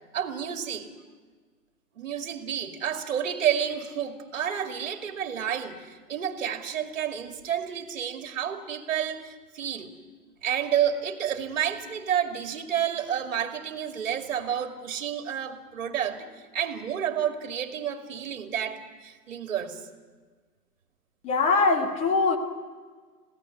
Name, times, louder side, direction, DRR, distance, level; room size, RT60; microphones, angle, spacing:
voice 1, 0.1-0.9 2.0-9.9 10.4-19.8, right 9 dB, 55° right, 7 dB, 2.4 m, -30 dB
voice 2, 21.2-22.4, left 4 dB, 15° left, 5 dB, 1.6 m, -22 dB
21.5 x 16.5 x 9.7 m, 1.5 s
hypercardioid pair, 140°, 47 cm